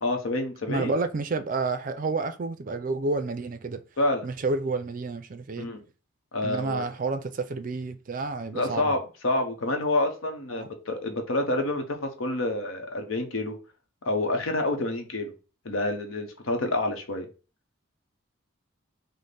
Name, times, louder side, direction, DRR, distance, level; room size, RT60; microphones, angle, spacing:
voice 1, 0.0-0.9 4.0-4.3 5.6-5.8 6.3-6.8 8.5-13.6 14.0-15.3 15.6-17.3, left 2 dB, 80° left, 0.9 m, -28 dB
voice 2, 0.7-3.8 4.2-5.7 6.4-9.0 10.5-10.7, right 3 dB, 40° right, 0.4 m, -30 dB
5.1 x 2.1 x 4.0 m
head